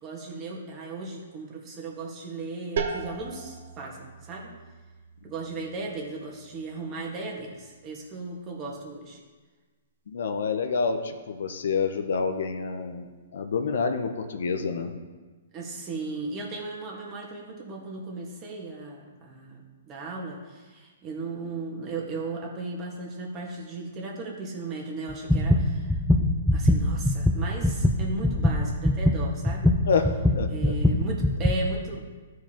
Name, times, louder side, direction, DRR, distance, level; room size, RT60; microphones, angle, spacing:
voice 1, 0.0-4.5 5.2-9.2 15.5-26.0 26.5-29.7 30.5-32.2, right 3 dB, 25° right, -1 dB, 1.5 m, -36 dB
sound 1, 2.8-8.3, right 5 dB, 65° right, 0.9 m, -38 dB
voice 2, 10.1-13.1 13.3-14.9 29.9-30.7, left 5 dB, 70° left, 7 dB, 0.7 m, -28 dB
sound 2, 25.1-31.6, left 1 dB, ahead, 0.5 m, -22 dB
14.0 x 4.7 x 2.9 m, 1.4 s
hypercardioid pair, 140°, 0 cm